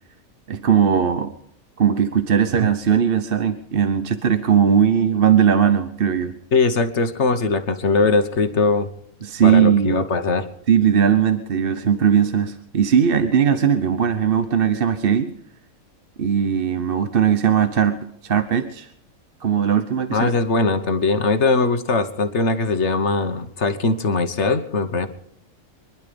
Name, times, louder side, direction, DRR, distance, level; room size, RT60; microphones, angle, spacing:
voice 1, 0.5-1.3 1.8-6.3 9.2-10.0 10.7-15.3 16.2-18.0 18.2-18.9 19.4-20.3, right 8 dB, 45° right, 10 dB, 1.0 m, -18 dB
voice 2, 6.5-8.9 9.4-10.5 20.1-25.1, left 3 dB, 55° left, 9 dB, 1.5 m, -20 dB
24.0 x 11.5 x 5.2 m, 0.73 s
omnidirectional pair, 1.5 m